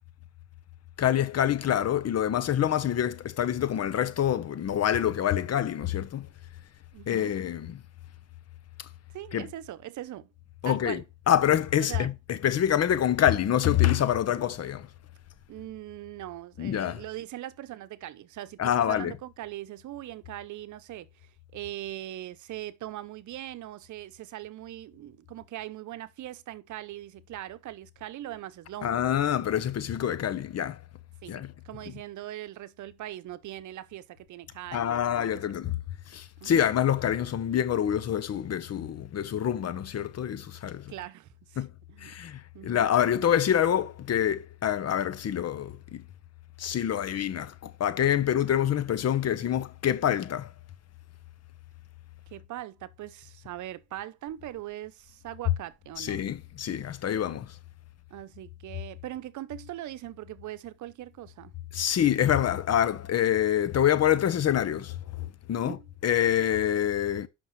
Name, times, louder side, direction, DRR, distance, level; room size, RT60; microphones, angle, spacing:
voice 1, 1.0-6.3 7.1-7.8 8.8-8.9 9.3-9.5 10.6-11.0 11.3-14.9 16.6-17.0 18.6-19.1 28.8-30.8 31.3-31.5 34.7-35.8 36.1-40.9 41.6-41.7 42.0-46.0 46.6-50.5 56.0-57.5 61.7-65.8 66.0-67.3, left 10 dB, 55° left, 1.0 m, -26 dB
voice 2, 6.9-7.3 9.1-10.3 10.6-11.0 11.8-12.1 15.5-29.0 31.2-35.4 36.4-36.6 40.9-42.2 42.5-42.8 52.3-56.2 58.1-61.5 65.6-65.9, right 14 dB, 75° right, 0.8 m, -41 dB
8.3 x 5.9 x 3.2 m
cardioid pair, 90°, 30 cm